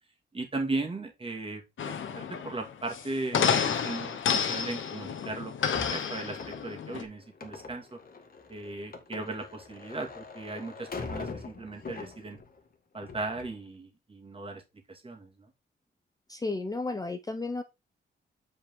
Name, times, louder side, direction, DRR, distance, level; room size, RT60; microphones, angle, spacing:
voice 1, 0.3-8.0 8.5-12.4 12.9-14.6 14.9-15.5, right 2 dB, 25° right, 2 dB, 2.2 m, -37 dB
sound 1, 1.8-7.0, left 7 dB, 80° left, 1.3 m, -30 dB
sound 2, 5.7-12.6 12.9-13.6, left 4 dB, 50° left, 1.8 m, -42 dB
voice 2, 16.3-17.6, left 3 dB, 20° left, 7 dB, 0.7 m, -33 dB
8.4 x 5.1 x 3.7 m, 0.25 s
wide cardioid pair, 135°, 20 cm